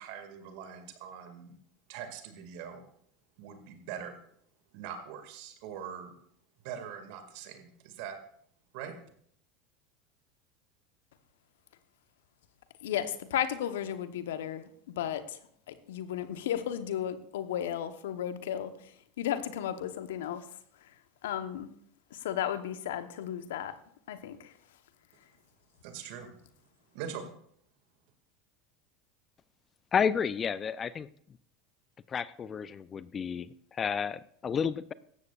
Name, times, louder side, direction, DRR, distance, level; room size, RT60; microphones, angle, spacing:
voice 1, 0.0-1.6 1.9-2.8 3.4-4.2 4.7-6.1 6.6-8.2 8.7-8.9 25.8-26.3 26.9-27.3, right 8 dB, 65° right, 6 dB, 2.1 m, -42 dB
voice 2, 12.8-15.4 15.7-20.5 20.8-20.9 21.2-21.7 22.1-23.7 24.1-24.5, left 10 dB, 75° left, 11 dB, 1.0 m, -34 dB
voice 3, 29.9-31.1 32.1-34.9, left 7 dB, 30° left, 17 dB, 0.5 m, -31 dB
17.0 x 14.0 x 2.4 m, 0.65 s
hypercardioid pair, 80°, 0 cm